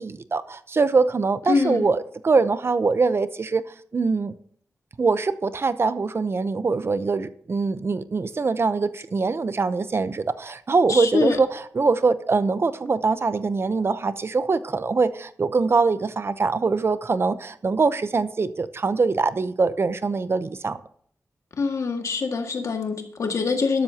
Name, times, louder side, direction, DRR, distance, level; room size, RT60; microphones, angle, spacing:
voice 1, 0.0-3.7 3.9-4.3 5.0-20.8, right 4 dB, 45° right, 0.7 m, -23 dB
voice 2, 1.5-1.9 10.9-11.4 21.6-23.8, left 4 dB, 70° left, 2.0 m, -24 dB
12.5 x 12.0 x 2.9 m
wide cardioid pair, 105°, 6 cm